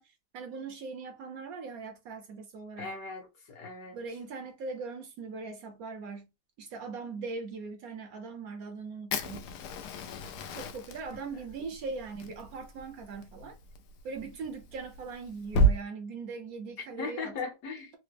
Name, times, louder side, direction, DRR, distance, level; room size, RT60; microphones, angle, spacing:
voice 1, 0.0-2.9 3.9-6.3 6.6-9.5 10.5-13.6 14.0-17.4, right 4 dB, 70° right, 0.9 m, -40 dB
voice 2, 2.8-4.0 17.0-17.9, left 4 dB, 60° left, 1.4 m, -38 dB
Fire, 9.1-15.7, right 2 dB, 80° left, 1.2 m, -32 dB
3.8 x 2.1 x 3.3 m
omnidirectional pair, 1.8 m